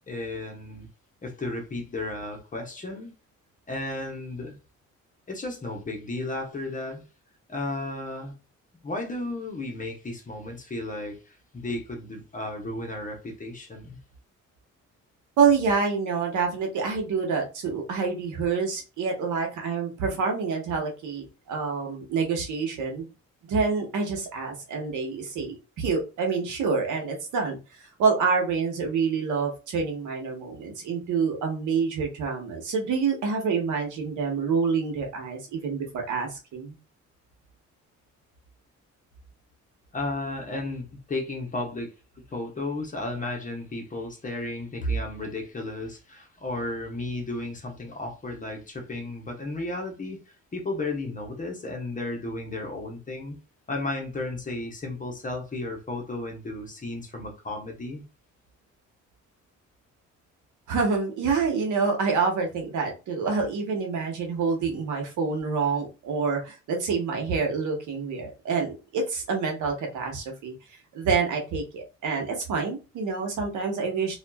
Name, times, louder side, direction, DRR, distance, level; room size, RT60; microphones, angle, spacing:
voice 1, 0.1-0.9 1.2-3.1 3.7-4.6 5.3-7.0 7.5-8.3 8.8-14.0 39.9-41.9 42.3-50.2 50.5-53.4 53.7-58.0, left 2 dB, 25° left, 0.9 m, -33 dB
voice 2, 15.4-23.1 23.5-27.6 28.0-36.7 60.7-70.5 70.9-74.2, right 5 dB, 80° right, 0.9 m, -27 dB
2.6 x 2.3 x 2.2 m
cardioid pair, 90°, 30 cm